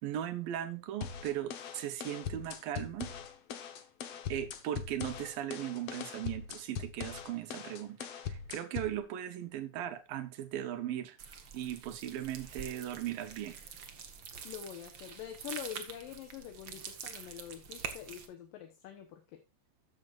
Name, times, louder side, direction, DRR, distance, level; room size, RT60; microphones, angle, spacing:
voice 1, 0.0-3.1 4.3-11.2 11.5-13.6, right 11 dB, 80° right, 2.9 m, -38 dB
sound 1, 1.0-9.0, left 7 dB, 60° left, 1.8 m, -41 dB
sound 2, 11.2-18.3, right 6 dB, 55° right, 1.3 m, -46 dB
voice 2, 14.4-19.4, left 10 dB, 75° left, 2.8 m, -45 dB
13.5 x 8.8 x 2.5 m
omnidirectional pair, 4.1 m